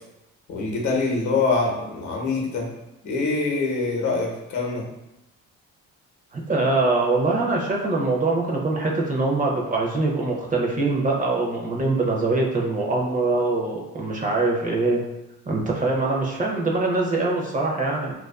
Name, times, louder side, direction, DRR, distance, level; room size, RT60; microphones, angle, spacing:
voice 1, 0.5-2.7 3.0-4.8, left 3 dB, 65° left, -1 dB, 0.7 m, -24 dB
voice 2, 6.3-15.0 15.5-18.1, right 3 dB, 25° right, -1 dB, 0.4 m, -23 dB
2.3 x 2.3 x 2.3 m, 0.94 s
cardioid pair, 95°, 31 cm